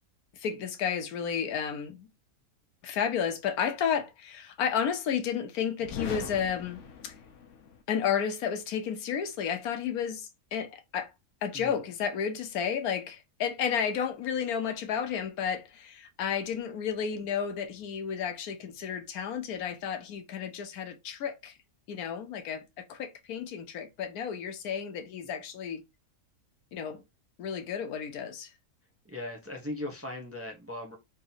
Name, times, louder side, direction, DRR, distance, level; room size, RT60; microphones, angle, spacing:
voice 1, 0.3-2.1 2.8-7.1 7.9-11.1 11.4-21.5 21.9-25.8 26.7-27.0 27.4-28.5, left 7 dB, 80° left, 1.2 m, -32 dB
sound 1, 5.8-7.8, left 6 dB, 60° left, 0.9 m, -41 dB
voice 2, 29.0-31.0, left 1 dB, 15° right, 0.7 m, -39 dB
4.0 x 2.8 x 3.9 m
omnidirectional pair, 1.6 m